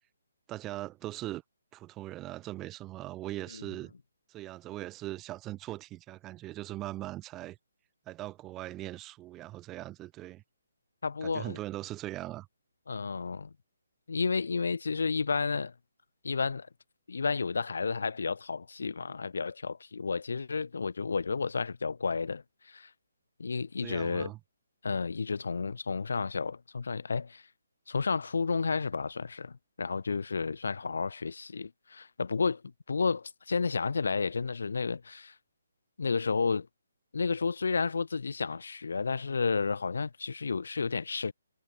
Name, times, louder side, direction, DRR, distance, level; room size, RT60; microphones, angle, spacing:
voice 1, 0.5-1.4 1.7-3.9 4.3-7.6 8.1-10.4 11.2-12.5 23.8-24.4, right 16 dB, 10° right, 0.5 m, -40 dB
voice 2, 11.0-11.6 12.9-13.5 14.1-15.7 16.2-16.7 17.1-22.4 22.7-22.9 23.4-24.3 24.8-27.4 27.9-32.6 32.9-35.3 36.0-36.7 37.1-41.3, left 4 dB, 70° left, 1.2 m, -31 dB
hypercardioid pair, 175°, 0 cm